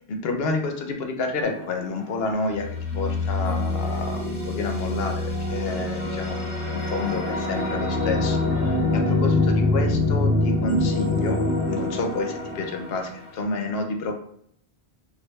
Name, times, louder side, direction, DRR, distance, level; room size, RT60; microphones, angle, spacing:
voice 1, 0.1-2.7 2.9-6.4 6.7-14.1, left 3 dB, 70° left, 4 dB, 0.8 m, -29 dB
sound 1, 1.4-2.0 2.5-13.2, left 2 dB, 85° left, 1.0 m, -25 dB
4.8 x 2.2 x 2.2 m, 0.66 s
omnidirectional pair, 1.1 m